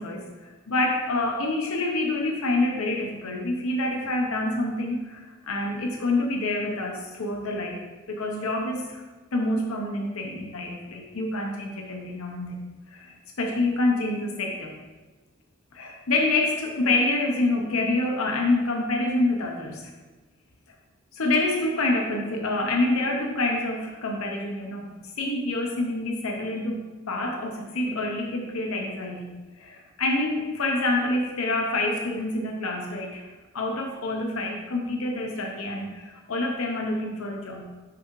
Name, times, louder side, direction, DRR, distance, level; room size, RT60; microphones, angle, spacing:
voice 1, 0.0-7.8 8.1-9.0 9.3-14.7 15.7-19.9 21.1-24.9 25.2-33.3 33.5-37.7, left 2 dB, 75° left, 1 dB, 0.8 m, -27 dB
6.1 x 5.6 x 3.0 m, 1.3 s
head